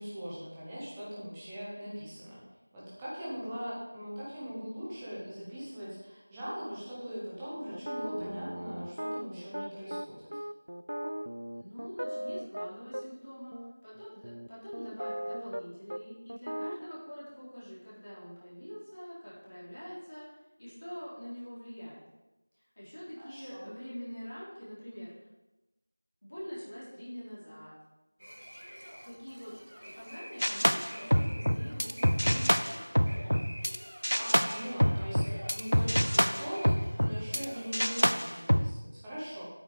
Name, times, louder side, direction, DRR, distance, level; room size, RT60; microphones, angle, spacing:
voice 1, 0.0-2.4 2.7-10.2 23.2-23.7 34.2-39.4, equal, 5° right, -11 dB, 0.9 m, -41 dB
sound 1, 7.7-13.0 13.5-13.7 14.2-15.6 15.9-16.0 16.3-16.9, equal, 65° right, 0.4 m, -38 dB
voice 2, 11.5-13.6 13.8-22.0 22.5-25.3 26.2-27.7 29.0-29.5 29.9-33.0, equal, 40° left, -9 dB, 3.6 m, -45 dB
sound 2, 28.2-37.7, equal, 85° right, 1.6 m, -47 dB
sound 3, 30.4-33.8 34.0-37.5 37.7-38.7, equal, 90° left, 0.5 m, -27 dB
8.6 x 6.6 x 5.1 m, 1.0 s
figure-of-eight pair, 175°, 0 cm